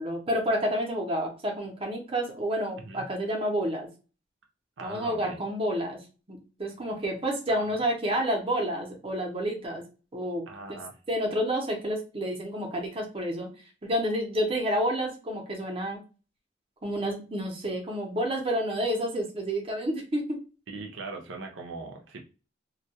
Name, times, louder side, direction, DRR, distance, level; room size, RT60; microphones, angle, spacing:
voice 1, 0.0-3.9 4.8-6.0 6.3-9.8 10.1-10.5 11.1-13.5 13.8-16.0 16.8-20.4, equal, 30° right, 1 dB, 0.7 m, -29 dB
voice 2, 4.8-5.4 7.5-7.8 10.5-11.0 20.7-22.2, right 3 dB, 80° right, 2 dB, 0.6 m, -40 dB
2.2 x 2.2 x 2.7 m, 0.33 s
head